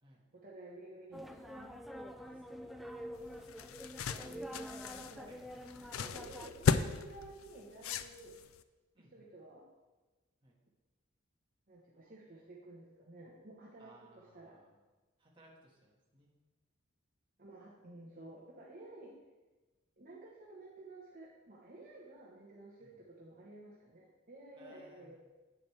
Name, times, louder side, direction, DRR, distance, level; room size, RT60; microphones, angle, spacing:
voice 1, 0.3-1.7 4.1-4.6 5.1-5.3 5.9-8.3 9.0-9.6 11.7-14.6 17.4-19.1 20.0-25.2, right 2 dB, 40° right, -4 dB, 1.0 m, -53 dB
sound 1, 1.1-6.5, equal, ahead, 0.3 m, -47 dB
voice 2, 2.2-2.9 4.0-6.2 8.9-9.3 10.4-10.6 13.8-14.7 15.2-16.3 22.8-22.9 24.5-25.2, right 1 dB, 25° right, -3 dB, 1.6 m, -64 dB
sound 2, 3.2-8.6, left 6 dB, 75° left, 0.4 m, -36 dB
9.1 x 7.7 x 3.3 m, 1.2 s
head